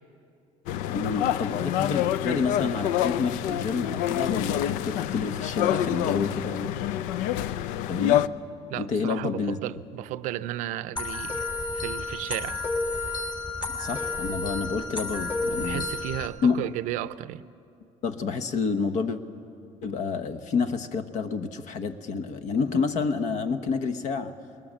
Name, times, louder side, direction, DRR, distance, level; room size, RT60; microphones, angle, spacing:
sound 1, 0.7-8.3, left 12 dB, 85° left, 0.5 m, -27 dB
voice 1, 0.9-6.7 7.9-8.3 8.7-9.6 13.8-15.8 16.4-16.7 18.0-19.2 19.8-24.3, left 5 dB, 65° left, 1.2 m, -29 dB
voice 2, 8.7-11.5 11.7-12.6 15.6-17.4, right 14 dB, 80° right, 0.5 m, -34 dB
sound 2, 11.0-16.3, left 3 dB, 40° left, 3.5 m, -31 dB
21.5 x 19.5 x 7.5 m
cardioid pair, 100°, 13 cm